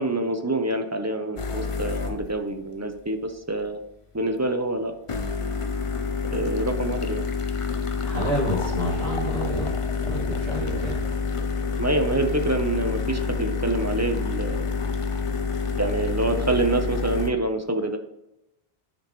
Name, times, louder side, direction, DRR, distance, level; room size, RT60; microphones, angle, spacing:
voice 1, 0.0-3.8 4.1-4.9 6.3-7.2 10.7-10.8 11.8-14.6 15.8-18.0, right 2 dB, 20° right, 6 dB, 0.5 m, -26 dB
sound 1, 1.4-2.3 5.1-17.3, left 5 dB, 40° left, 0.5 m, -28 dB
voice 2, 8.0-9.8 10.0-11.0, right 1 dB, 65° right, -4 dB, 2.3 m, -29 dB
10.5 x 5.2 x 3.1 m, 0.86 s
omnidirectional pair, 1.1 m